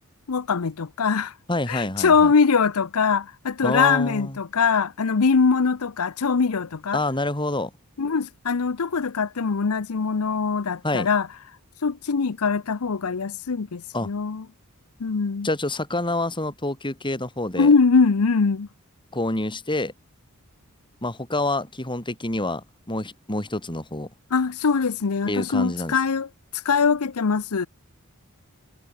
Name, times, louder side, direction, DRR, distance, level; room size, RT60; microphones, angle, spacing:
voice 1, 0.3-1.3 1.7-7.0 8.0-11.3 11.8-14.4 15.0-15.5 17.6-18.7 24.3-26.3 26.6-27.7, left 5 dB, 85° left, 0.7 m, -22 dB
voice 2, 1.5-2.3 3.6-4.4 6.9-7.7 10.8-11.1 13.9-14.1 15.4-17.7 19.1-19.9 21.0-24.1 25.2-26.0, left 2 dB, 20° left, 5.0 m, -27 dB
head